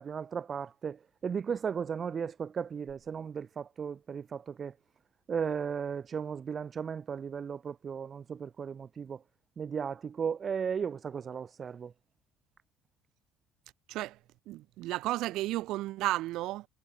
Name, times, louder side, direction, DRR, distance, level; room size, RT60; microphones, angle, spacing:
voice 1, 0.0-4.7 5.3-9.2 9.6-11.9, right 7 dB, 30° right, 0.5 m, -35 dB
voice 2, 14.5-16.6, right 17 dB, 65° right, 0.7 m, -33 dB
cardioid pair, 150°, 0 cm